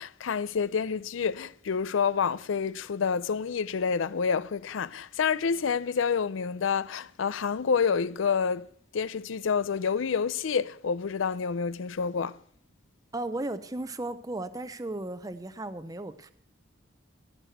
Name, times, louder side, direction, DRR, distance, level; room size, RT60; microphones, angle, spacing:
voice 1, 0.0-8.7 8.9-12.4, left 6 dB, 85° left, 0.5 m, -28 dB
voice 2, 13.1-16.3, right 2 dB, 20° right, 0.6 m, -35 dB
16.5 x 6.1 x 7.8 m
head